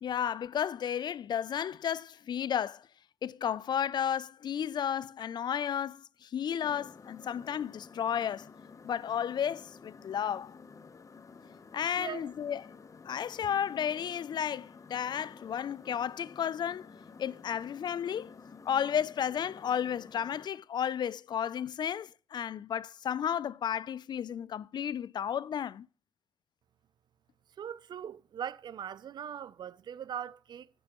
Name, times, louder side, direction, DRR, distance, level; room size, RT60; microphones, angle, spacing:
voice 1, 0.0-2.9 3.2-8.5 8.8-10.6 11.7-12.6 13.0-16.9 17.2-18.3 18.7-25.9, left 9 dB, 75° left, 0.4 m, -33 dB
sound 1, 6.6-20.5, left 5 dB, 45° left, 0.7 m, -52 dB
voice 2, 12.0-12.3 27.6-30.7, right 9 dB, 75° right, 0.4 m, -40 dB
15.0 x 6.2 x 3.0 m
wide cardioid pair, 120°, 8 cm